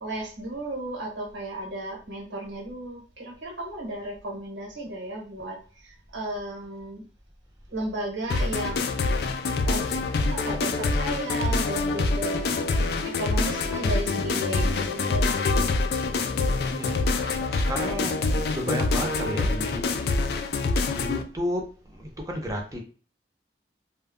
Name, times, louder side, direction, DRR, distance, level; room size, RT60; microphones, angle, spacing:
voice 1, 0.0-7.0 7.7-8.8 9.2-9.3 9.6-9.9 10.3-12.7 13.0-15.3, right 1 dB, 85° right, -1 dB, 1.1 m, -34 dB
sound 1, 8.3-21.2, left 3 dB, 60° left, 0.3 m, -25 dB
voice 2, 16.7-17.1 17.5-18.2 18.4-19.9 20.9-21.7 21.9-22.8, equal, 20° right, 1 dB, 0.6 m, -32 dB
2.2 x 2.0 x 3.5 m, 0.39 s
head